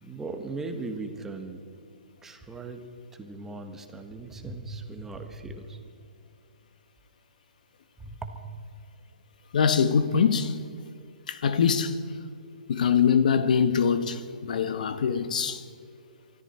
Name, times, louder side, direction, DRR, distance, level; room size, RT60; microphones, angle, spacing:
voice 1, 0.0-1.6 2.2-2.8 3.1-5.8 8.0-8.4, right 3 dB, 10° right, 1.2 m, -38 dB
voice 2, 9.5-10.6 11.3-12.0 12.7-15.6, left 6 dB, 65° left, 1.1 m, -23 dB
24.0 x 14.0 x 4.3 m
hypercardioid pair, 145°, 5 cm